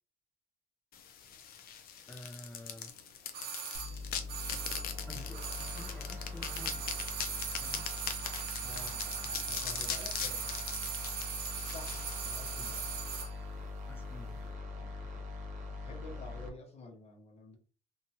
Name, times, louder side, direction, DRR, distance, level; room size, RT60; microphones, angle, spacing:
sound 1, 0.9-12.8, left 8 dB, 60° left, 0.5 m, -41 dB
voice 1, 2.1-2.9 5.1-6.9 7.5-7.8 13.9-14.6, left 1 dB, 10° left, 2 dB, 0.5 m, -50 dB
sound 2, 3.3-6.1 6.4-13.4 13.6-13.7, right 7 dB, 70° right, 0.5 m, -40 dB
sound 3, 3.7-16.5, left 3 dB, 45° right, 0.9 m, -43 dB
voice 2, 8.6-10.7 11.7-12.8 14.8-15.3 15.8-17.6, left 3 dB, 40° left, 2 dB, 0.9 m, -50 dB
2.7 x 2.3 x 2.7 m, 0.41 s
cardioid pair, 110°, 17 cm